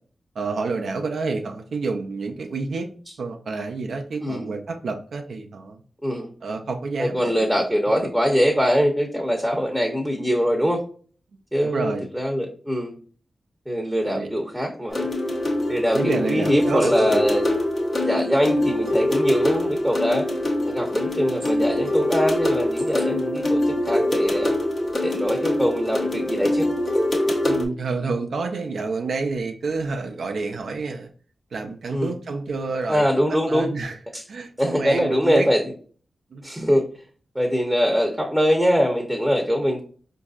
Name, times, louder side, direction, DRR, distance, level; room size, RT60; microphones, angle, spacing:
voice 1, 0.4-2.9 3.2-5.8 6.4-7.5 8.0-8.1 11.6-12.0 14.0-14.4 15.9-17.3 27.4-31.1 31.5-34.0 34.3-35.5 36.3-36.4, right 3 dB, 80° right, 4 dB, 0.4 m, -29 dB
voice 2, 4.2-4.5 6.0-6.3 7.0-10.8 11.5-12.9 13.7-15.1 15.7-17.5 18.0-20.3 20.6-24.5 25.0-26.7 31.9-32.1 32.9-33.7 34.1-34.2 34.6-35.6 36.4-36.9 37.3-39.8, equal, ahead, 1 dB, 0.7 m, -23 dB
sound 1, 14.9-27.6, left 1 dB, 60° left, 1.0 m, -24 dB
4.5 x 2.6 x 2.3 m, 0.42 s
cardioid pair, 55°, 0 cm